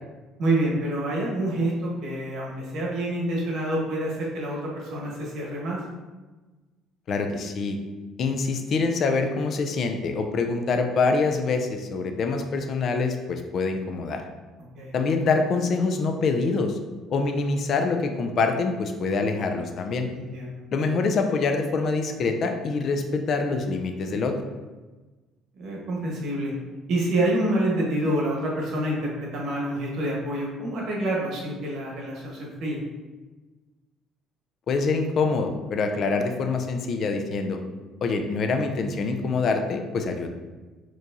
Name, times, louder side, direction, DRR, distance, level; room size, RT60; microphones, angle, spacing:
voice 1, 0.4-5.8 14.7-15.0 20.1-20.6 25.6-26.5 26.9-32.8, right 1 dB, 65° right, -3 dB, 1.1 m, -27 dB
voice 2, 7.1-7.8 8.2-14.2 14.9-16.8 17.1-20.1 20.7-24.3 34.7-37.6 38.0-40.3, left 4 dB, 50° left, 5 dB, 0.4 m, -25 dB
4.4 x 3.0 x 2.6 m, 1.2 s
cardioid pair, 115°, 0 cm